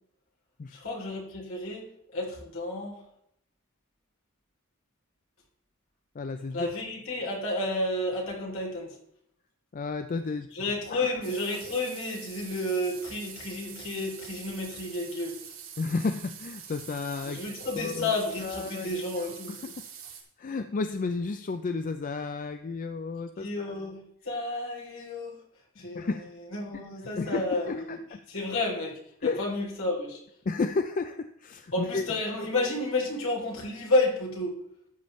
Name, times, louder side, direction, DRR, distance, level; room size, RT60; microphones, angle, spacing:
voice 1, 0.7-3.0 6.5-9.0 10.5-15.4 17.2-19.6 23.4-25.4 25.8-26.1 26.5-28.0 28.3-30.2 31.7-34.6, left 2 dB, 70° left, -2 dB, 3.1 m, -31 dB
voice 2, 6.1-6.7 9.7-10.5 10.9-11.1 15.8-18.1 18.4-18.9 19.2-19.8 20.4-23.7 25.9-26.3 27.1-28.2 29.2-29.4 30.5-32.1, left 4 dB, 40° left, 8 dB, 0.4 m, -32 dB
sound 1, 11.2-20.2, right 8 dB, 70° right, 2.6 m, -45 dB
13.0 x 8.6 x 3.2 m, 0.72 s
head